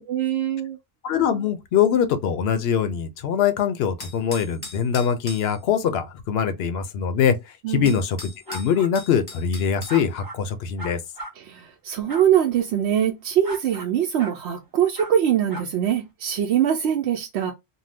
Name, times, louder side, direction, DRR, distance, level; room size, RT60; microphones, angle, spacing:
voice 1, 0.1-0.8 7.6-7.9 11.4-17.5, right 10 dB, 80° right, 0.8 m, -23 dB
voice 2, 1.0-11.0, left 8 dB, 75° left, 0.8 m, -23 dB
sound 1, 4.0-5.5 7.3-7.4 7.9-10.0, left 2 dB, 25° left, 0.5 m, -39 dB
sound 2, 8.5-8.9 9.9-10.4 10.8-11.3 12.1-12.2 13.4-13.9 14.2-14.4 14.9-15.1 15.5-15.6, right 2 dB, 25° right, 0.7 m, -36 dB
2.7 x 2.2 x 3.3 m
omnidirectional pair, 1.1 m